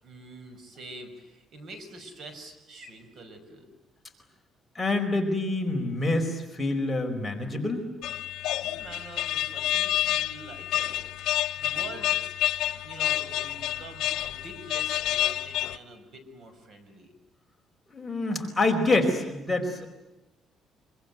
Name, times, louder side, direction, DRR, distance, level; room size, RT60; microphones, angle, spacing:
voice 1, 0.0-3.7 8.6-11.1 11.6-12.2 12.8-17.1, right 2 dB, 50° right, 8 dB, 6.0 m, -45 dB
voice 2, 4.7-7.9 17.9-19.9, left 2 dB, 5° left, 1 dB, 4.5 m, -26 dB
sound 1, 8.0-15.8, left 13 dB, 85° left, 1.0 m, -29 dB
25.5 x 25.0 x 9.4 m, 1.0 s
cardioid pair, 135°, 0 cm